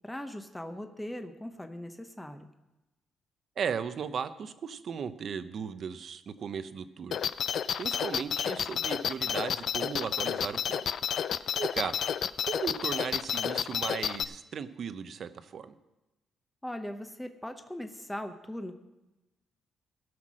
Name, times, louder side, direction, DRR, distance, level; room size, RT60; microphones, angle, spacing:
voice 1, 0.0-2.5 16.6-18.7, left 1 dB, 5° left, 7 dB, 0.8 m, -39 dB
voice 2, 3.6-7.2 7.8-10.8 11.5-11.9 12.4-15.8, right 7 dB, 55° right, 12 dB, 0.7 m, -36 dB
sound 1, 7.1-14.2, left 8 dB, 60° left, 0.4 m, -31 dB
17.0 x 6.0 x 6.2 m, 1.0 s
cardioid pair, 90°, 0 cm